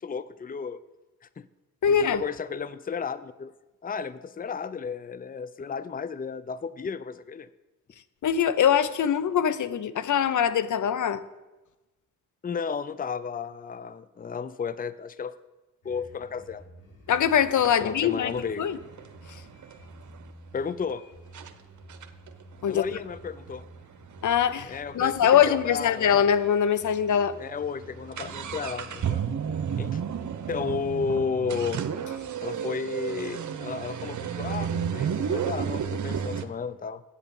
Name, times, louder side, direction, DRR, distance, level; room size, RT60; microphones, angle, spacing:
voice 1, 0.0-0.8 1.4-1.5 1.9-3.5 3.8-7.5 12.4-15.3 15.8-16.6 17.8-18.6 20.5-21.0 22.7-23.6 24.7-26.3 27.4-29.3 29.8-30.0 30.5-31.9 32.4-37.0, left 5 dB, 25° left, 16 dB, 0.6 m, -33 dB
voice 2, 1.8-2.2 8.2-11.2 17.1-18.3 18.6-18.8 22.6-22.8 24.2-27.3, left 8 dB, 70° left, 14 dB, 0.7 m, -23 dB
sound 1, 15.8-31.0, right 1 dB, 85° left, 2.9 m, -50 dB
sound 2, 17.1-17.2 17.6-20.3 20.9-21.0 21.3-21.5 21.9-25.6 25.9-26.0 26.1-26.2 26.9-27.0 27.3-36.5, right 8 dB, 65° right, 1.0 m, -32 dB
8.3 x 8.2 x 7.1 m, 1.1 s
supercardioid pair, 50°, 32 cm